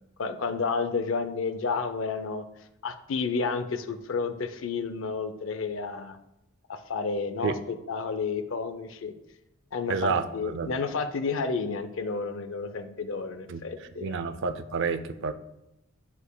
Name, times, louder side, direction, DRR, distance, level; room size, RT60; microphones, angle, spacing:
voice 1, 0.2-2.4 2.8-6.2 6.7-9.1 9.7-14.2, left 4 dB, 65° left, 9 dB, 0.5 m, -31 dB
voice 2, 9.9-10.7 13.5-13.6 14.0-15.3, right 5 dB, 60° right, 11 dB, 0.4 m, -29 dB
9.8 x 4.7 x 2.2 m, 0.86 s
head